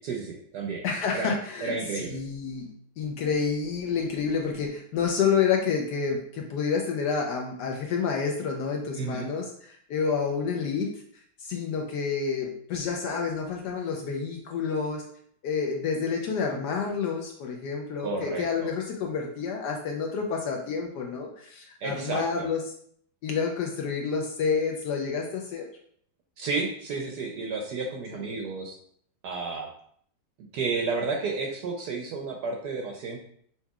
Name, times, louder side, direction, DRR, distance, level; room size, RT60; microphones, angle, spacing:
voice 1, 0.0-0.8 1.1-1.3 1.6-2.2 9.0-9.3 18.0-18.7 21.8-22.5 26.4-28.8 29.2-29.7 30.5-33.2, right 4 dB, 70° right, 1 dB, 1.0 m, -31 dB
voice 2, 0.8-11.0 11.4-15.0 15.4-22.6 23.2-25.7, left 5 dB, 70° left, 1 dB, 1.0 m, -29 dB
5.5 x 2.9 x 2.3 m, 0.63 s
omnidirectional pair, 2.1 m